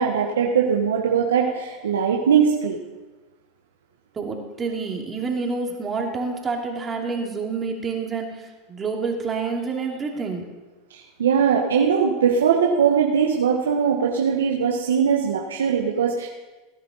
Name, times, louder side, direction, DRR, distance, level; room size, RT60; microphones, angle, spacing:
voice 1, 0.0-2.8 10.9-16.3, right 7 dB, 90° right, -1 dB, 1.4 m, -20 dB
voice 2, 4.1-10.5, right 4 dB, 25° right, 1 dB, 2.6 m, -28 dB
19.0 x 10.5 x 4.1 m, 1.2 s
hypercardioid pair, 100°, 0 cm